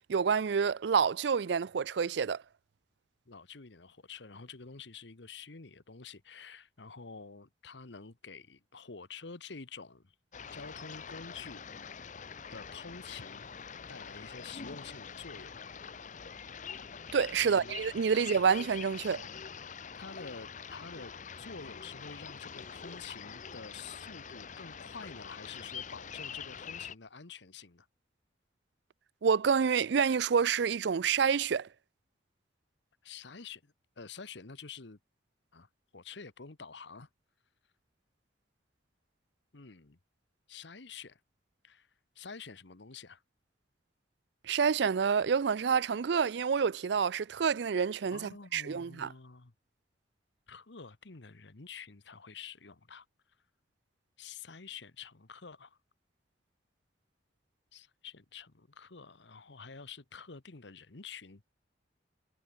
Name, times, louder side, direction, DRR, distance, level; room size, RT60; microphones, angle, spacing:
voice 1, 0.1-2.4 17.1-19.2 29.2-31.7 44.5-49.1, right 6 dB, 65° right, 0.4 m, -28 dB
voice 2, 3.3-10.1 10.5-11.6 12.5-13.5 13.9-15.6 17.4-17.7 18.1-18.2 20.0-27.9 33.0-35.0 35.5-37.1 39.5-40.0 40.5-41.2 41.6-41.9 42.1-43.2 48.1-49.5 50.5-53.0 54.2-55.8 57.7-61.5, left 5 dB, 70° left, 1.2 m, -48 dB
sound 1, 10.3-27.0, left 6 dB, 40° left, 0.8 m, -45 dB
head